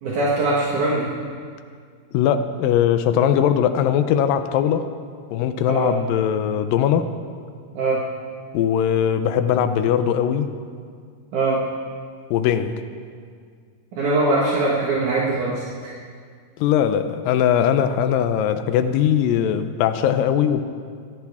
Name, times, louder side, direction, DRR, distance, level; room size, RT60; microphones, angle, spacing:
voice 1, 0.0-1.1 5.7-5.9 7.7-8.0 11.3-11.6 14.0-15.9, right 2 dB, 65° right, -5 dB, 3.0 m, -22 dB
voice 2, 2.1-4.9 5.3-7.1 8.5-10.5 12.3-12.7 16.6-20.6, left 9 dB, 85° left, 9 dB, 2.5 m, -20 dB
24.5 x 15.0 x 3.6 m, 2.1 s
omnidirectional pair, 3.9 m